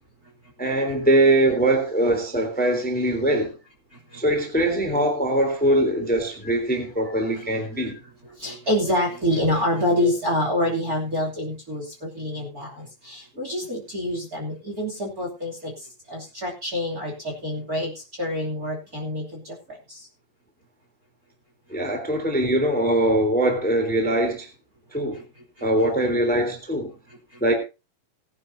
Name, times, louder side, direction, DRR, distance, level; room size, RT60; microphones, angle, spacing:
voice 1, 0.6-3.5 4.1-8.0 10.0-10.1 21.7-24.5 24.9-25.2 25.6-26.9 27.4-27.5, right 1 dB, 5° left, 2.8 m, -22 dB
voice 2, 3.9-4.2 6.4-6.5 7.2-7.5 7.8-8.0 8.4-20.1 24.9-25.2 25.6-25.7 27.1-27.4, left 1 dB, 25° right, 3.1 m, -27 dB
19.5 x 10.5 x 2.7 m
omnidirectional pair, 4.2 m